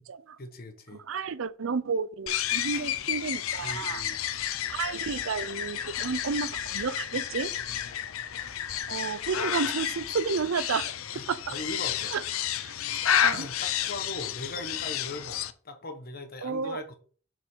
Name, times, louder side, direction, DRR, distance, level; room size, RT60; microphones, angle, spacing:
voice 1, 0.4-1.0 2.7-2.8 3.6-4.2 7.7-7.9 11.1-12.1 13.3-16.9, left 2 dB, 45° left, 1.4 m, -40 dB
voice 2, 1.1-4.0 4.7-7.5 8.9-10.9 11.3-11.5 12.1-12.2 12.6-12.7 13.2-13.5 16.4-16.8, right 5 dB, 70° right, 0.5 m, -31 dB
sound 1, 2.3-15.5, left 10 dB, 75° left, 0.6 m, -31 dB
7.0 x 5.3 x 3.8 m
head